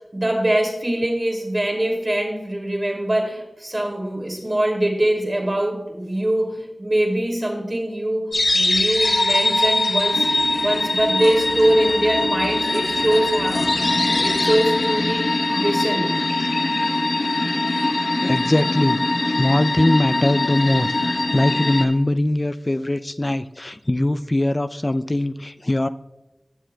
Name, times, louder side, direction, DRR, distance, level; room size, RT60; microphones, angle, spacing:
voice 1, 0.1-15.3 15.5-16.1, right 1 dB, 45° right, 0 dB, 2.5 m, -23 dB
sound 1, 8.3-21.9, left 2 dB, 85° left, 0.9 m, -22 dB
voice 2, 18.2-19.0 19.3-25.9, left 1 dB, 35° left, 12 dB, 0.3 m, -21 dB
16.0 x 7.5 x 2.2 m, 0.98 s
wide cardioid pair, 40°, 0 cm